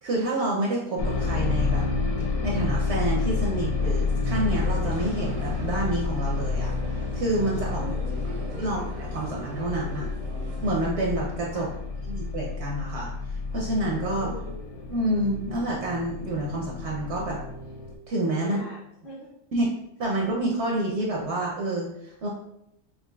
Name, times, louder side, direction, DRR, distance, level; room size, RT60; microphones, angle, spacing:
voice 1, 0.0-1.8 2.4-6.7 7.1-7.8 8.6-10.1 10.6-11.7 12.0-14.3 14.9-17.4 18.1-18.6 19.5-19.7 20.0-22.3, right 1 dB, 60° right, -3 dB, 0.8 m, -28 dB
sound 1, 1.0-17.9, left 4 dB, 80° left, 1.0 m, -30 dB
sound 2, 4.4-10.9, right 3 dB, 90° right, 1.3 m, -41 dB
voice 2, 7.7-8.6 11.5-11.8 14.2-14.6 18.4-19.3, left 1 dB, 45° left, -8 dB, 1.7 m, -42 dB
5.3 x 2.5 x 2.2 m, 0.79 s
omnidirectional pair, 1.6 m